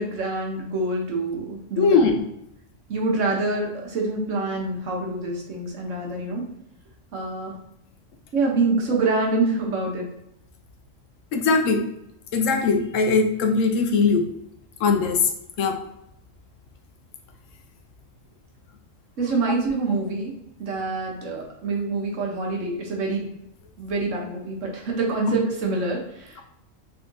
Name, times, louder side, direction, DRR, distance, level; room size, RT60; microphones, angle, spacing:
voice 1, 0.0-2.1 2.9-6.4 7.1-7.5 8.3-10.1 19.2-20.3 20.6-23.3 23.8-26.4, right 3 dB, 70° right, -1 dB, 1.3 m, -26 dB
voice 2, 1.8-2.2 11.3-11.8 12.3-14.3 14.8-15.2 15.6-15.8, left 4 dB, 75° left, 5 dB, 0.9 m, -20 dB
3.7 x 3.3 x 2.6 m, 0.79 s
omnidirectional pair, 1.4 m